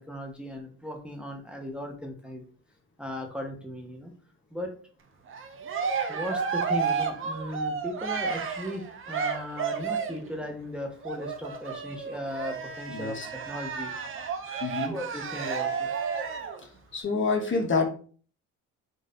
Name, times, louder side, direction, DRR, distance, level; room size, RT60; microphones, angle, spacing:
voice 1, 0.0-2.4 3.0-4.1 4.5-4.7 6.1-13.9 14.8-15.9, equal, 5° right, 1 dB, 0.9 m, -37 dB
Cheering, 5.3-10.3 11.0-16.6, right 6 dB, 45° right, 0.7 m, -32 dB
voice 2, 12.9-13.3 14.6-14.9 16.9-17.8, left 4 dB, 40° left, 3 dB, 1.0 m, -27 dB
4.0 x 2.5 x 3.8 m, 0.43 s
cardioid pair, 90°, 30 cm